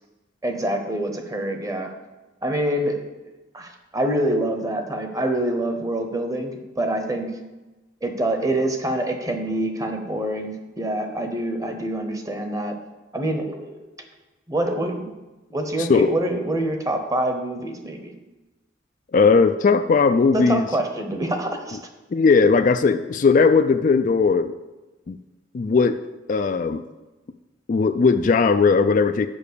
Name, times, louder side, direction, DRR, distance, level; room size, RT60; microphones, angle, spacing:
voice 1, 0.4-1.9 2.4-3.0 3.5-7.3 8.0-12.8 13.1-13.8 14.5-15.1 15.5-18.1 20.3-21.8, right 1 dB, 15° right, 5 dB, 0.9 m, -26 dB
voice 2, 15.8-16.1 19.1-20.6 21.7-21.8 22.1-24.5 25.1-25.2 25.5-26.0 26.3-26.8 27.7-29.3, left 4 dB, 40° left, 9 dB, 0.3 m, -18 dB
7.1 x 5.7 x 6.7 m, 1.1 s
head